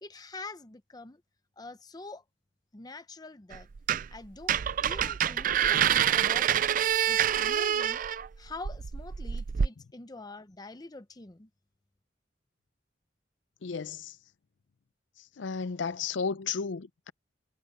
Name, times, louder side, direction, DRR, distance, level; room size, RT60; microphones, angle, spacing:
voice 1, 0.0-1.2 1.6-2.2 2.7-3.7 4.1-6.7 7.1-8.0 8.4-11.5, left 3 dB, 20° left, 0.7 m, -45 dB
sound 1, 3.5-4.2 4.4-9.7, right 9 dB, 45° right, 0.4 m, -27 dB
voice 2, 13.6-14.2 15.2-17.1, left 5 dB, 80° left, 0.5 m, -34 dB
head